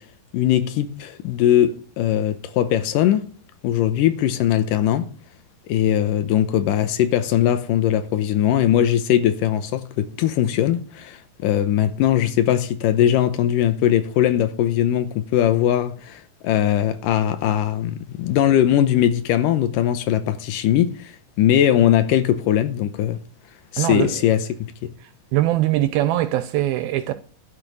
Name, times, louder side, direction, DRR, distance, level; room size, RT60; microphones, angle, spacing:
voice 1, 0.3-3.2 3.6-5.1 5.7-21.1 21.4-23.2 23.7-24.4, left 11 dB, 75° left, 2.2 m, -20 dB
voice 2, 23.8-24.4 25.3-27.1, right 14 dB, 80° right, 2.4 m, -22 dB
12.5 x 5.2 x 8.8 m
omnidirectional pair, 4.4 m